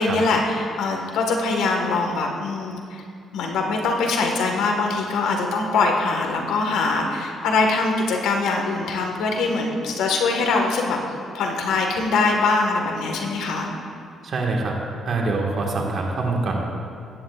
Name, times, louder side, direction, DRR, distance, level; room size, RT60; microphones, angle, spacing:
voice 1, 0.0-3.0 3.3-11.0 11.3-13.7, left 3 dB, 90° left, 2 dB, 1.5 m, -23 dB
voice 2, 14.2-14.8 15.0-16.6, right 3 dB, 55° right, 0 dB, 1.6 m, -24 dB
16.5 x 11.0 x 2.4 m, 2.4 s
cardioid pair, 90°, 0 cm